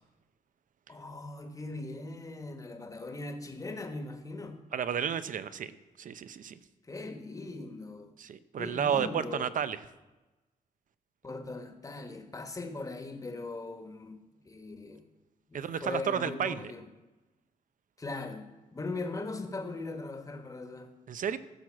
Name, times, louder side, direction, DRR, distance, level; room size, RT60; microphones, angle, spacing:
voice 1, 0.9-4.6 6.9-8.1 8.6-9.6 11.2-15.0 15.5-16.9 18.0-21.0, left 2 dB, 20° left, 7 dB, 1.3 m, -40 dB
voice 2, 4.7-5.7 6.0-6.6 8.2-9.8 15.5-16.7 21.1-21.4, right 8 dB, 60° right, 14 dB, 0.7 m, -32 dB
14.5 x 6.3 x 7.4 m, 1.1 s
wide cardioid pair, 120°, 15 cm